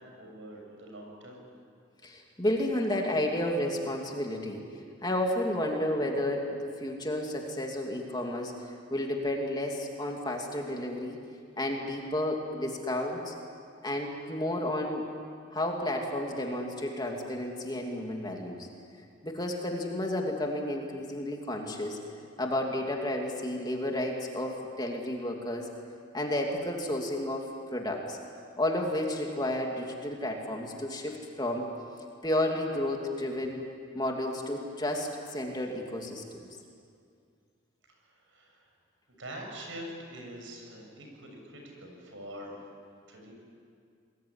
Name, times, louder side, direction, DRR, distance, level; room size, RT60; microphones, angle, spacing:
voice 1, 0.1-1.4 38.0-38.7 39.1-42.6 43.1-43.3, equal, 75° right, 1 dB, 6.8 m, -44 dB
voice 2, 2.0-4.6 5.0-8.5 8.9-11.2 11.6-13.3 13.8-15.1 15.5-18.7 19.2-22.0 22.4-25.7 26.1-28.2 28.6-31.6 32.2-33.6 33.9-36.2, left 1 dB, 20° left, 1 dB, 2.7 m, -31 dB
26.0 x 21.5 x 9.9 m, 2.3 s
head